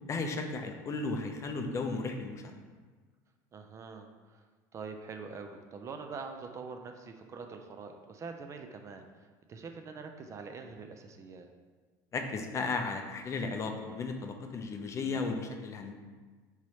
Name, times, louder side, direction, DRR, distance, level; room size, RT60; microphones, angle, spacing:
voice 1, 0.1-2.5 12.1-15.9, left 3 dB, 35° left, 5 dB, 0.4 m, -35 dB
voice 2, 3.5-4.4 4.7-11.5, right 4 dB, 35° right, 5 dB, 0.4 m, -44 dB
4.6 x 3.0 x 2.8 m, 1.4 s
supercardioid pair, 105°, 9 cm